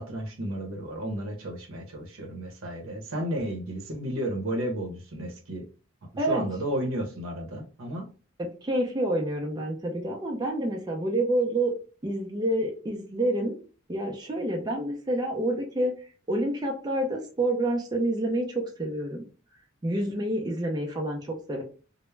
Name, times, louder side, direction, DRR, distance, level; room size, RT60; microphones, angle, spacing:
voice 1, 0.0-5.7 6.3-8.1, right 1 dB, 85° right, 0.7 m, -33 dB
voice 2, 8.4-11.7 12.0-13.6 13.9-15.9 16.3-19.2 19.8-21.6, right 1 dB, 20° right, 0.4 m, -28 dB
2.2 x 2.0 x 3.1 m
head